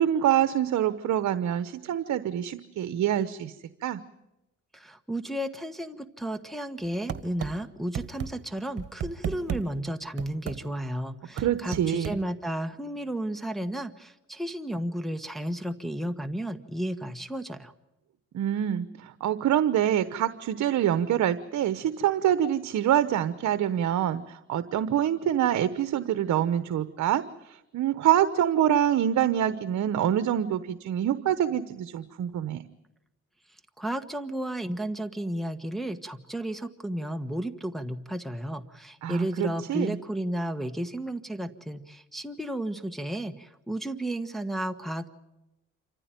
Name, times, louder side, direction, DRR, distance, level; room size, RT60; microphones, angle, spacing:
voice 1, 0.0-3.6 3.8-4.0 11.4-12.2 18.3-32.6 39.0-40.0, right 10 dB, 70° right, 12 dB, 1.0 m, -26 dB
voice 2, 4.7-17.7 33.8-45.1, right 1 dB, ahead, 5 dB, 1.3 m, -33 dB
sound 1, 7.1-7.5 8.0-8.3 8.8-9.6 10.2-10.6 11.4-12.2, right 8 dB, 50° right, 1.9 m, -32 dB
27.5 x 15.0 x 9.1 m, 0.93 s
cardioid pair, 90°, 30 cm